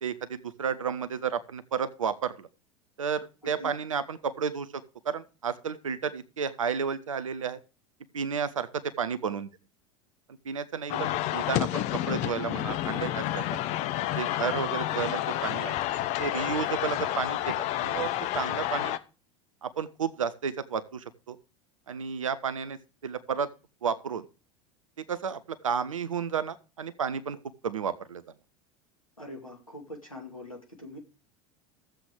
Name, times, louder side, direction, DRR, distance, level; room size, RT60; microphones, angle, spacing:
voice 1, 0.0-2.5 3.0-7.6 8.1-8.7 9.0-9.5 10.4-13.6 14.1-15.7 16.2-18.1 18.3-19.0 19.6-21.4 21.9-22.8 23.0-23.5 23.8-24.2 25.0-27.4 27.6-28.2, right 7 dB, 75° right, 14 dB, 0.7 m, -32 dB
sound 1, 10.9-19.0, left 14 dB, 40° left, 0.7 m, -30 dB
voice 2, 29.2-31.0, left 1 dB, 90° left, 1 dB, 2.4 m, -43 dB
14.0 x 7.7 x 3.5 m, 0.33 s
figure-of-eight pair, 75°, 17 cm